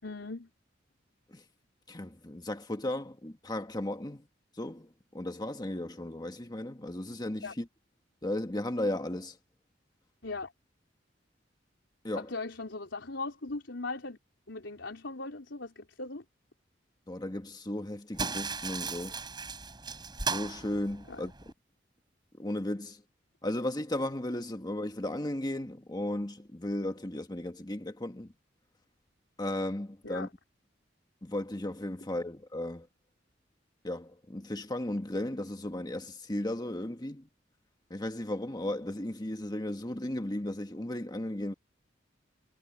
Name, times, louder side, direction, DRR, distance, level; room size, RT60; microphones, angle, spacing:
voice 1, 0.0-0.5 7.4-7.5 10.2-10.5 12.2-14.2 14.5-16.2 21.1-21.3 30.0-30.3, left 3 dB, 85° left, 4.0 m, -39 dB
voice 2, 1.9-4.2 4.6-4.9 5.1-7.6 8.2-9.3 12.0-12.3 17.1-19.2 20.3-21.3 22.4-23.0 23.4-28.3 29.4-30.3 31.2-32.9 33.8-37.3 37.9-41.5, left 1 dB, 20° left, 1.5 m, -35 dB
sound 1, 18.1-21.5, right 4 dB, 25° right, 7.7 m, -37 dB
head